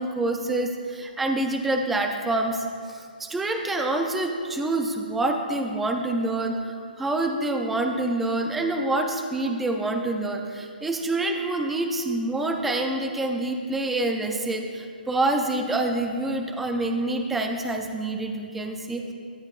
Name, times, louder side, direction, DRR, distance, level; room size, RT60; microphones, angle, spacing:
voice 1, 0.0-19.1, right 2 dB, ahead, 3 dB, 0.4 m, -27 dB
17.0 x 12.0 x 2.4 m, 2.2 s
hypercardioid pair, 175°, 5 cm